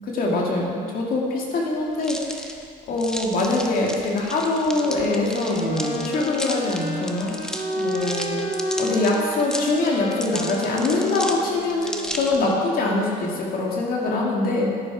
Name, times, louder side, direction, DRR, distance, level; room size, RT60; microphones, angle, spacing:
voice 1, 0.1-2.5 2.9-7.3 7.8-8.5 8.8-14.7, left 2 dB, 60° left, -2 dB, 2.4 m, -24 dB
sound 1, 2.0-12.5, equal, 5° left, 1.0 m, -34 dB
sound 2, 4.7-12.7, left 1 dB, 40° left, 3.0 m, -30 dB
10.5 x 10.5 x 4.8 m, 2.2 s
cardioid pair, 110°, 17 cm